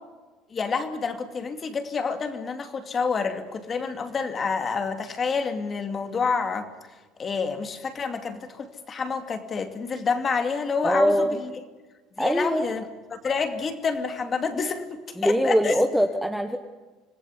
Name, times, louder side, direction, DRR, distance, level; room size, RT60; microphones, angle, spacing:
voice 1, 0.5-6.7 7.2-11.5 12.2-15.8, left 5 dB, 20° left, 8 dB, 2.4 m, -28 dB
voice 2, 10.8-11.4 12.2-12.7 15.2-16.6, equal, ahead, 6 dB, 1.2 m, -22 dB
26.5 x 19.5 x 9.8 m, 1.3 s
cardioid pair, 175°, 0 cm